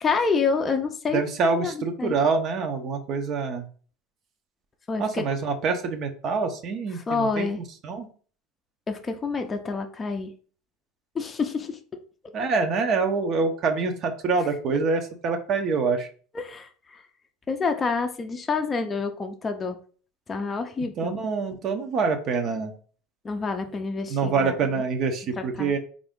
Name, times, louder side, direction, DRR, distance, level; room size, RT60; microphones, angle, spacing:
voice 1, 0.0-1.2 1.6-1.7 2.0-2.1 4.9-5.2 7.1-7.6 8.9-10.3 11.1-11.8 16.3-17.0 17.5-19.8 20.3-21.2 23.2-24.5 25.6-25.7, left 4 dB, 25° left, 5 dB, 0.4 m, -27 dB
voice 2, 1.1-3.7 5.0-8.1 12.3-16.1 21.0-22.7 24.1-25.8, right 4 dB, 50° right, 5 dB, 0.6 m, -26 dB
3.5 x 2.5 x 3.5 m, 0.42 s
supercardioid pair, 105°, 0 cm